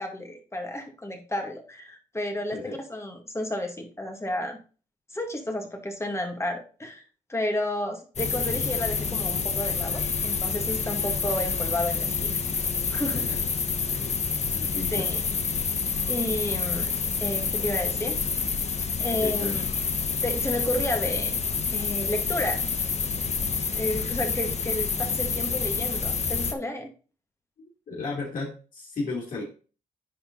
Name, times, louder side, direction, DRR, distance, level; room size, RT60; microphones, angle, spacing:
voice 1, 0.0-4.6 5.1-7.0 7.3-12.4 12.9-13.3 14.9-15.2 16.1-18.2 19.0-19.7 20.2-21.4 21.7-22.7 23.7-26.9, left 1 dB, 20° left, 4 dB, 2.3 m, -32 dB
sound 1, 8.2-26.5, left 5 dB, 45° left, 1.2 m, -28 dB
voice 2, 13.8-14.2 14.5-15.3 15.8-16.0 19.2-19.6 27.9-29.4, left 3 dB, 65° left, -5 dB, 3.3 m, -35 dB
10.5 x 4.4 x 4.0 m, 0.36 s
cardioid pair, 65°, 15 cm